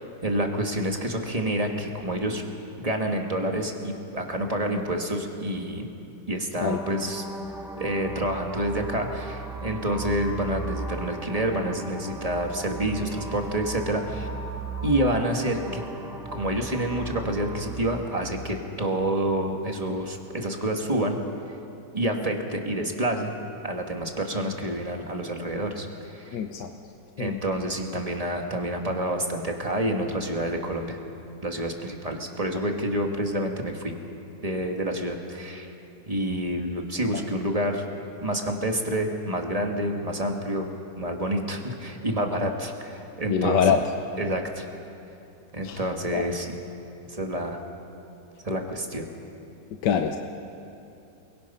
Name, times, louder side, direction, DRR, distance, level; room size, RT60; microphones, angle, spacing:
voice 1, 0.2-2.4 2.8-5.9 6.3-7.2 7.8-14.3 14.8-15.8 16.3-21.2 21.9-23.3 23.6-26.4 27.2-31.0 31.4-33.9 34.4-35.7 36.1-37.8 38.2-40.7 40.9-43.8 44.2-44.6 45.5-46.6 47.1-47.6 48.4-49.1, right 1 dB, 20° right, 2 dB, 1.8 m, -28 dB
sound 1, 6.6-18.6, right 3 dB, ahead, 1.6 m, -36 dB
voice 2, 26.3-26.7 27.2-27.3 43.3-43.8 45.6-45.8 46.1-46.2 49.8-50.2, left 7 dB, 70° left, 5 dB, 1.5 m, -23 dB
30.0 x 22.0 x 5.6 m, 2.8 s
omnidirectional pair, 2.0 m